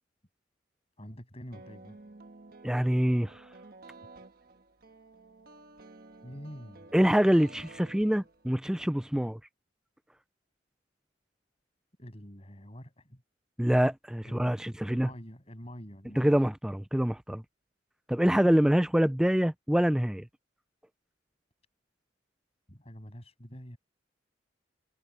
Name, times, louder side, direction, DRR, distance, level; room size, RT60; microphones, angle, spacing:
voice 1, 1.0-2.0 6.2-6.9 12.0-13.2 14.2-14.5 14.9-16.3 22.7-23.8, equal, 35° left, 7.4 m, -46 dB
sound 1, 1.5-8.6, right 2 dB, 55° right, 1.4 m, -52 dB
voice 2, 2.6-3.4 6.9-9.4 13.6-15.1 16.2-17.4 18.1-20.3, equal, 5° right, 0.3 m, -25 dB
head